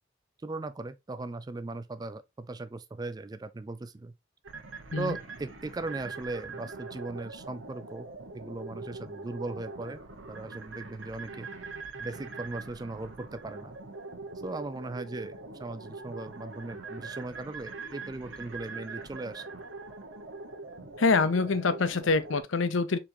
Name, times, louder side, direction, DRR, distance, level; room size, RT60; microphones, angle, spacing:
voice 1, 0.4-4.1 5.0-8.1 8.3-10.0 10.3-11.5 12.0-13.7 14.4-19.4, right 2 dB, 20° right, 0.3 m, -38 dB
sound 1, 4.4-22.4, right 3 dB, 80° right, 1.2 m, -43 dB
voice 2, 21.0-23.0, left 4 dB, 75° left, 0.6 m, -25 dB
4.4 x 4.3 x 2.7 m
head